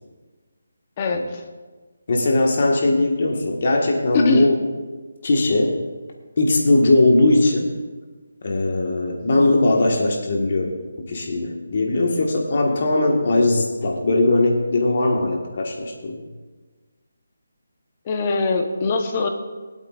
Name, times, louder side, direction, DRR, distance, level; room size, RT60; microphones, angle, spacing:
voice 1, 1.0-1.4 4.1-4.5 18.0-19.3, left 3 dB, 30° left, 4 dB, 1.0 m, -22 dB
voice 2, 2.1-4.6 5.2-5.8 6.4-7.7 8.4-10.8 11.0-16.2, left 2 dB, 50° left, 1 dB, 1.6 m, -19 dB
22.5 x 8.2 x 2.5 m, 1.3 s
figure-of-eight pair, 165°, 0 cm